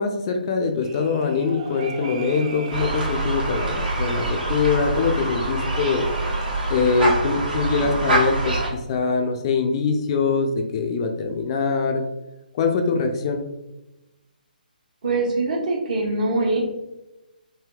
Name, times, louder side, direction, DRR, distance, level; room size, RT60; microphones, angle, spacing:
voice 1, 0.0-6.0 6.7-12.0 12.5-13.4, left 4 dB, 35° left, 4 dB, 0.4 m, -23 dB
sound 1, 0.8-6.7, right 4 dB, 35° right, 0.4 m, -40 dB
sound 2, 2.7-8.7, right 2 dB, 70° right, 1.2 m, -25 dB
voice 2, 15.0-16.6, right 2 dB, 55° right, -2 dB, 1.0 m, -23 dB
3.4 x 2.6 x 2.3 m, 0.99 s
figure-of-eight pair, 135°, 5 cm